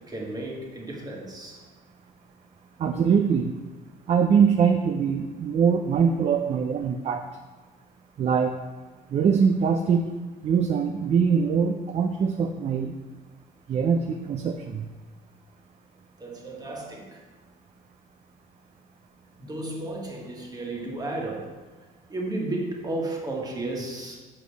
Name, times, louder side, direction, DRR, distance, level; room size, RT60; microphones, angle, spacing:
voice 1, 0.0-1.6 16.2-17.2 19.4-21.6 22.1-24.2, right 2 dB, 25° right, -1 dB, 1.6 m, -33 dB
voice 2, 2.8-3.5 4.1-7.2 8.2-8.5 9.1-10.1 10.4-12.9 13.7-14.9, right 6 dB, 40° right, 6 dB, 0.5 m, -23 dB
5.9 x 5.5 x 4.7 m, 1.4 s
cardioid pair, 110°, 17 cm